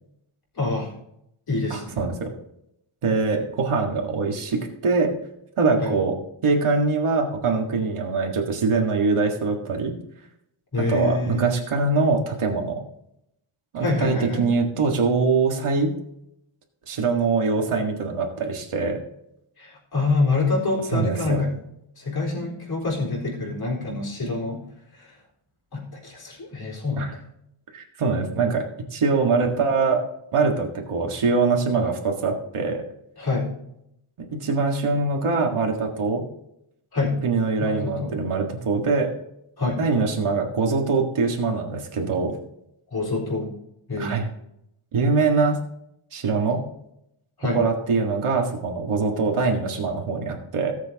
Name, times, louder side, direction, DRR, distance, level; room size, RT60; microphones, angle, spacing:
voice 1, 0.6-0.9 1.5-2.0 5.8-6.0 10.7-11.5 13.8-14.5 19.6-21.5 22.0-24.6 25.0-25.1 25.7-27.0 33.2-33.5 36.9-37.2 37.6-38.2 39.6-39.8 42.9-43.5 43.9-44.3 47.4-47.6, left 3 dB, 45° left, -4 dB, 4.4 m, -26 dB
voice 2, 1.7-2.3 3.0-5.1 5.6-6.2 6.4-10.0 10.8-12.8 13.7-15.9 16.9-19.0 20.9-21.4 27.0-27.1 27.7-28.6 28.9-30.0 30.3-32.8 34.2-36.3 37.2-39.1 39.8-42.4 44.0-44.3 44.9-45.6 46.1-46.7 47.5-50.7, right 4 dB, 80° right, 1 dB, 1.8 m, -23 dB
18.0 x 7.5 x 2.9 m, 0.79 s
wide cardioid pair, 150°, 50 cm